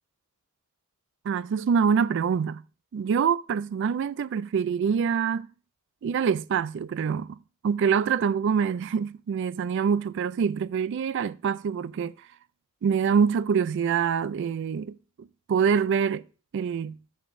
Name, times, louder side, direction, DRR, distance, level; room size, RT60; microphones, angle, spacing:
voice 1, 1.3-2.6 2.9-5.5 6.0-7.4 7.6-12.1 12.8-16.2 16.5-17.0, right 6 dB, 55° right, 0.3 m, -25 dB
13.5 x 7.1 x 2.5 m
head